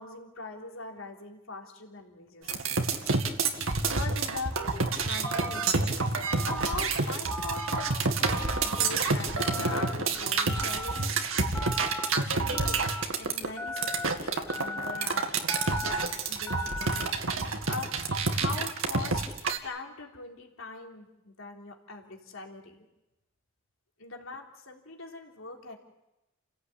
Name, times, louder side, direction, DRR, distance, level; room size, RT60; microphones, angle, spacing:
voice 1, 0.0-2.6 3.8-6.1 6.5-11.1 12.1-12.9 13.2-15.3 16.3-17.9 18.3-19.2 19.6-22.8 24.0-25.8, left 3 dB, 80° left, 1 dB, 3.7 m, -41 dB
sound 1, 2.5-19.6, right 4 dB, 85° right, 2.1 m, -28 dB
Telephone, 5.2-5.7 6.3-6.8 7.3-7.9 8.3-8.9 9.4-9.9 10.5-11.1 11.5-12.1 12.5-13.0 13.6-14.1 14.5-15.1 15.5-16.0 16.5-17.1, left 2 dB, 10° left, 1.9 m, -37 dB
30.0 x 16.5 x 8.8 m, 0.97 s
head